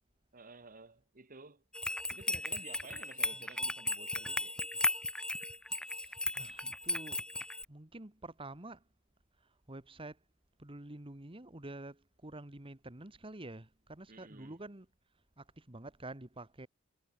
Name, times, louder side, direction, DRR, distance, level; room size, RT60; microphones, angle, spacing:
voice 1, 0.3-1.6 2.1-4.6 14.1-14.6, right 3 dB, 40° right, 1.7 m, -53 dB
sound 1, 1.7-7.6, left 1 dB, 5° left, 1.0 m, -36 dB
voice 2, 5.7-7.3 7.7-8.8 9.4-10.2 10.6-14.9 15.4-16.7, right 2 dB, 25° right, 1.6 m, -48 dB
head